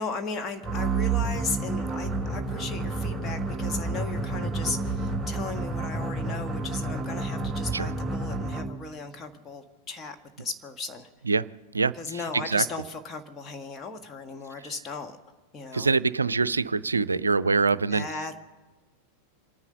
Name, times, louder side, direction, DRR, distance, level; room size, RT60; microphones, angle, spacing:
voice 1, 0.0-11.1 11.9-15.2 15.5-15.9 17.9-18.4, left 4 dB, 25° left, 5 dB, 1.3 m, -36 dB
sound 1, 0.6-8.9, right 3 dB, 10° right, 1.1 m, -30 dB
voice 2, 11.7-12.7 15.7-18.1, right 4 dB, 75° right, 17 dB, 0.5 m, -24 dB
26.5 x 9.6 x 5.6 m, 1.2 s
figure-of-eight pair, 90°, 0 cm